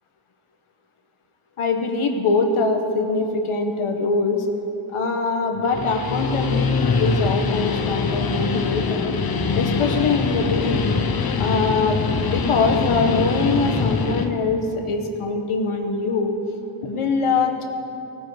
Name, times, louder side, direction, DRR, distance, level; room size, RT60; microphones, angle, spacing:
voice 1, 1.6-4.5 4.9-9.1 9.5-11.0 11.4-16.3 16.8-17.6, left 3 dB, 90° left, 4 dB, 1.3 m, -23 dB
Guitar, 5.6-14.3, left 5 dB, 45° left, 0.8 m, -23 dB
17.0 x 9.3 x 4.9 m, 2.9 s
wide cardioid pair, 85°, 49 cm